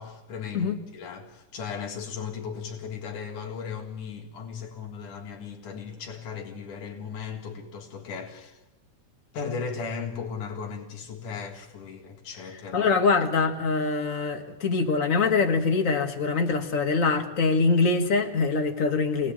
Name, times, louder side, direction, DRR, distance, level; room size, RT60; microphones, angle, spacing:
voice 1, 0.0-8.6 9.3-12.9, left 6 dB, 80° left, 3.4 m, -36 dB
voice 2, 12.7-19.3, left 4 dB, 30° left, 1.7 m, -24 dB
26.0 x 18.0 x 8.9 m
omnidirectional pair, 3.5 m